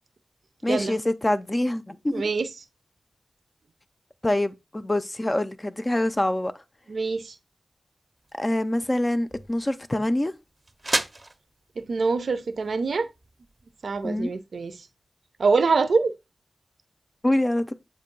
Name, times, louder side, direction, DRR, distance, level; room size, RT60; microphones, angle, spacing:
voice 1, 0.6-2.2 4.2-6.5 8.4-10.3 14.0-14.3 17.2-17.7, left 1 dB, 20° left, 0.5 m, -25 dB
voice 2, 2.1-2.5 6.9-7.3 11.9-13.1 13.8-14.8 15.4-16.1, right 4 dB, 75° right, 0.6 m, -24 dB
sound 1, 8.2-14.1, right 2 dB, 30° right, 0.6 m, -36 dB
7.5 x 2.6 x 5.3 m
wide cardioid pair, 95°, 0 cm